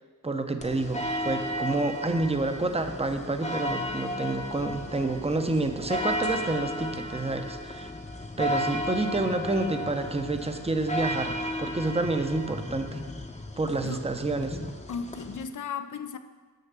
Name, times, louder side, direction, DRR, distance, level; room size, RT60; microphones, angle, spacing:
voice 1, 0.2-7.9 8.4-13.0 13.6-14.6, right 2 dB, 15° right, 0.7 m, -29 dB
sound 1, 0.6-15.4, left 1 dB, 20° left, 0.8 m, -34 dB
voice 2, 14.9-16.2, left 6 dB, 55° left, 0.5 m, -35 dB
6.8 x 6.4 x 7.4 m
wide cardioid pair, 70°, 37 cm